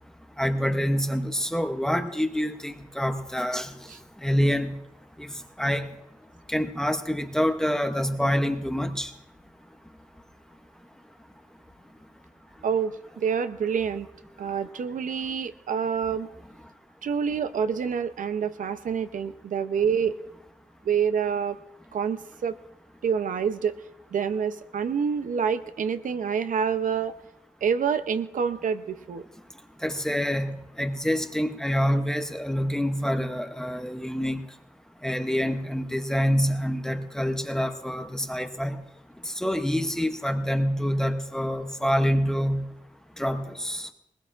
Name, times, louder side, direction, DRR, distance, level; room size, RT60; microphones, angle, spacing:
voice 1, 0.4-3.7 4.2-4.8 5.2-5.3 5.6-5.9 6.5-9.1 29.8-34.4 35.0-38.8 39.3-42.6 43.2-43.9, equal, 5° left, 6 dB, 0.7 m, -26 dB
voice 2, 12.6-14.1 14.4-16.3 17.0-20.2 20.8-21.6 21.9-22.5 23.0-23.8 24.1-27.1 27.6-29.2, right 7 dB, 80° right, 10 dB, 0.7 m, -27 dB
21.5 x 20.5 x 2.5 m, 0.84 s
wide cardioid pair, 175°, 13 cm